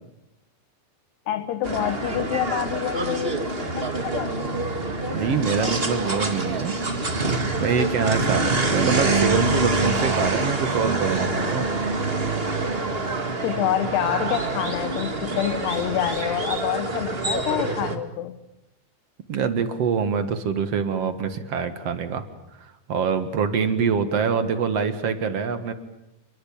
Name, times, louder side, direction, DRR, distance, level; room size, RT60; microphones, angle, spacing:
voice 1, 1.3-4.5 8.6-8.8 13.4-18.4, left 12 dB, 75° left, 11 dB, 3.1 m, -27 dB
sound 1, 1.6-17.9, right 3 dB, 30° right, 1.1 m, -26 dB
voice 2, 5.1-6.8 7.6-11.7 19.3-22.2 22.6-25.7, right 6 dB, 55° right, 10 dB, 1.9 m, -25 dB
29.0 x 22.5 x 8.8 m, 0.89 s
omnidirectional pair, 5.0 m